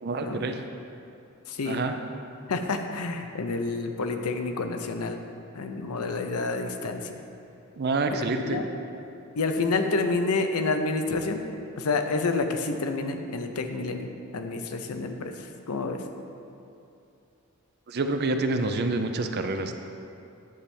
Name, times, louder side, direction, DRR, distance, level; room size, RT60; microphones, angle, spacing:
voice 1, 0.0-0.6 1.6-1.9 7.8-8.6 17.9-19.7, right 3 dB, 45° right, 6 dB, 0.5 m, -27 dB
voice 2, 1.5-1.8 2.5-5.2 5.5-7.1 8.4-8.7 9.4-11.4 11.8-16.0, left 3 dB, 80° left, 6 dB, 0.6 m, -29 dB
9.8 x 3.3 x 7.0 m, 2.7 s
head